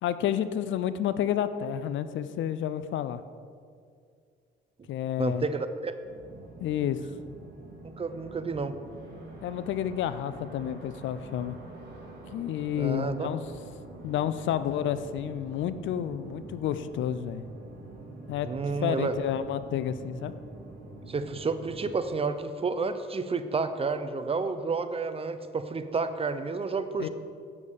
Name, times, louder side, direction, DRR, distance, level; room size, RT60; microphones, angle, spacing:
voice 1, 0.0-3.2 4.9-5.4 6.6-7.0 9.4-11.6 12.3-13.4 14.0-17.4 18.3-20.3 27.0-27.1, left 10 dB, 75° left, 13 dB, 0.5 m, -30 dB
voice 2, 5.2-5.9 7.8-8.8 12.7-13.3 18.4-19.1 21.1-27.1, right 4 dB, 30° right, 10 dB, 0.6 m, -30 dB
sound 1, 6.0-21.9, right 2 dB, 50° right, 2.3 m, -46 dB
8.4 x 7.0 x 5.1 m, 2.2 s
cardioid pair, 90°, 20 cm